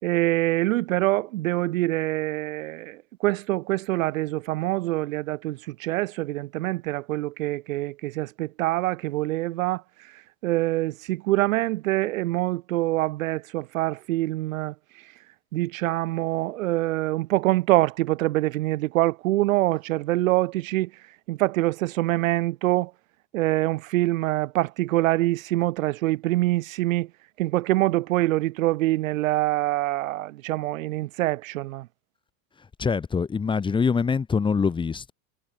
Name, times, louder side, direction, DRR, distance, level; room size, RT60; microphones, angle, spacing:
voice 1, 0.0-9.8 10.4-14.7 15.5-20.9 21.3-22.9 23.3-27.1 27.4-31.9, right 17 dB, 70° right, 2.5 m, -25 dB
voice 2, 32.8-35.1, left 5 dB, 10° left, 2.0 m, -24 dB
supercardioid pair, 160°, 42 cm